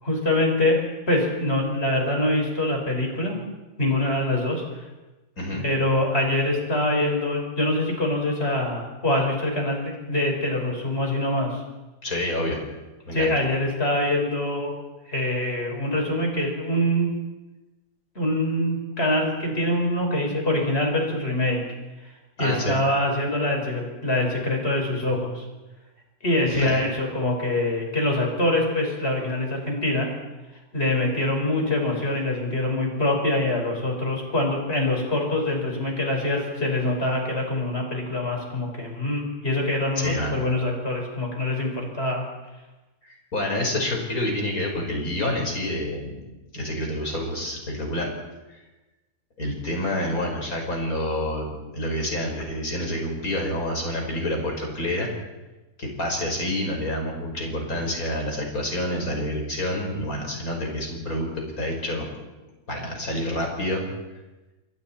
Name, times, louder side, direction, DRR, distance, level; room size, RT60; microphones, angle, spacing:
voice 1, 0.0-3.4 3.8-4.8 5.5-11.6 13.1-14.7 15.1-17.1 18.2-21.6 22.4-25.5 26.2-30.1 30.7-42.2, left 1 dB, 40° left, 0 dB, 5.6 m, -24 dB
voice 2, 12.0-12.6 13.1-13.3 22.4-22.8 26.5-26.8 40.0-40.4 43.0-46.2 46.5-48.1 48.5-48.6 49.4-55.1 55.8-62.0 62.7-63.8, left 1 dB, 60° left, 1 dB, 5.4 m, -28 dB
28.5 x 22.5 x 4.4 m, 1.1 s
omnidirectional pair, 1.7 m